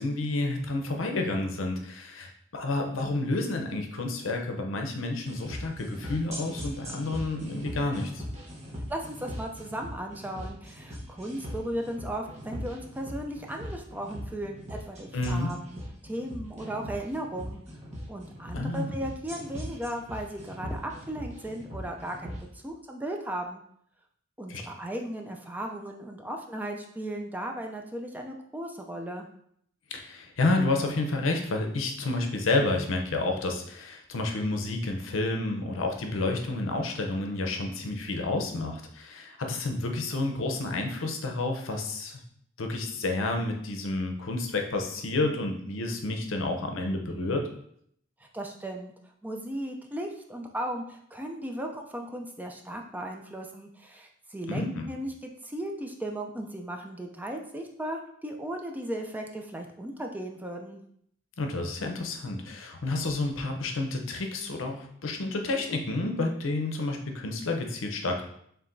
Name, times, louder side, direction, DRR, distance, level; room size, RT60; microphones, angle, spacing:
voice 1, 0.0-8.2 15.1-15.5 18.5-19.0 24.5-24.6 29.9-42.2 42.6-47.4 54.5-54.9 61.4-68.2, left 2 dB, 75° left, 3 dB, 0.6 m, -30 dB
sound 1, 5.3-22.4, equal, 35° right, 1.0 m, -40 dB
voice 2, 8.9-17.6 18.1-23.6 24.4-29.3 48.3-48.9 49.2-60.8, right 1 dB, 10° right, 2 dB, 0.3 m, -36 dB
4.7 x 3.3 x 2.6 m, 0.68 s
head